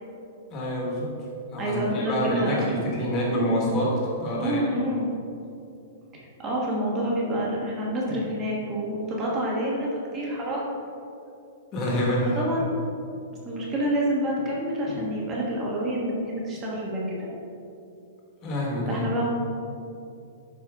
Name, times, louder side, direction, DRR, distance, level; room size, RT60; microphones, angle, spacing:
voice 1, 0.5-1.1 1.5-4.6 11.7-12.4 18.4-19.1, equal, 20° left, -3 dB, 1.4 m, -27 dB
voice 2, 1.6-2.7 4.4-5.1 6.4-9.9 10.1-10.6 12.3-12.7 13.4-17.3 18.9-19.3, right 1 dB, 15° right, -4 dB, 1.3 m, -27 dB
11.0 x 4.5 x 3.6 m, 2.6 s
supercardioid pair, 175°, 0 cm